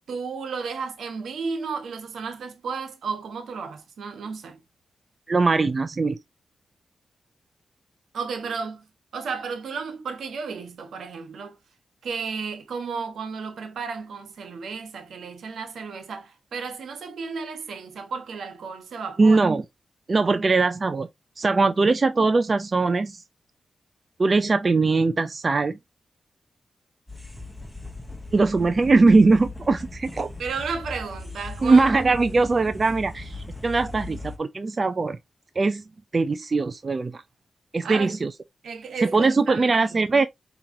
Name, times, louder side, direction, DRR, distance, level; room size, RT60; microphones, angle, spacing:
voice 1, 0.1-4.6 8.1-8.9 9.1-11.6 12.0-19.4 30.4-31.9 37.8-38.1 38.6-40.0, right 5 dB, 85° right, 1.1 m, -33 dB
voice 2, 5.3-6.2 19.2-19.6 20.1-21.1 21.4-23.2 24.2-25.8 28.3-30.3 31.6-35.2 35.6-35.8 36.1-37.2 37.7-38.3 39.1-40.3, right 3 dB, 45° right, 0.4 m, -21 dB
sound 1, 27.1-34.4, left 2 dB, 5° left, 1.1 m, -38 dB
4.9 x 3.0 x 2.7 m
cardioid pair, 50°, 0 cm